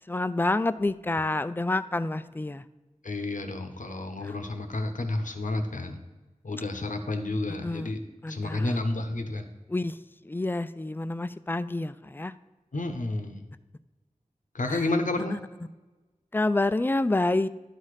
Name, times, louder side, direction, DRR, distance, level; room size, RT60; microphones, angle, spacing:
voice 1, 0.1-2.6 4.2-4.3 7.6-7.9 8.2-8.8 9.7-10.0 10.2-12.3 14.7-14.8 15.3-15.4 16.3-17.5, left 2 dB, 15° left, 14 dB, 0.3 m, -28 dB
voice 2, 3.0-6.0 6.4-8.0 8.3-9.5 12.7-13.4 14.5-15.4, left 2 dB, 85° left, 6 dB, 0.8 m, -30 dB
11.0 x 4.2 x 4.9 m, 1.2 s
wide cardioid pair, 50°, 13 cm